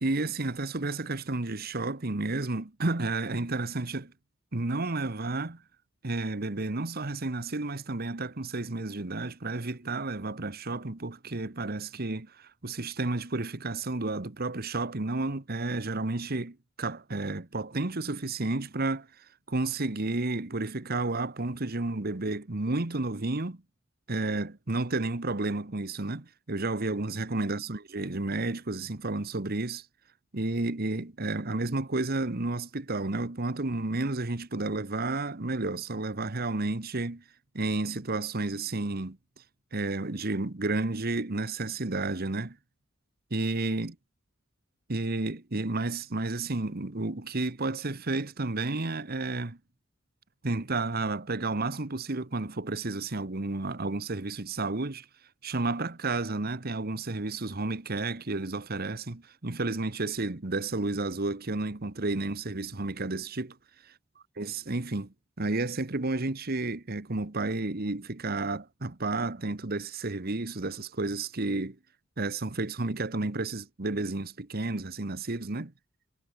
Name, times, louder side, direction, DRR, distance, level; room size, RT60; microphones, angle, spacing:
voice 1, 0.0-4.1 4.5-5.6 6.0-19.1 19.5-23.6 24.1-29.8 30.3-37.2 37.5-39.2 39.7-42.6 43.3-43.9 44.9-49.6 50.4-55.1 55.4-63.6 64.4-71.8 72.2-75.7, right 2 dB, 50° right, 1.4 m, -31 dB
head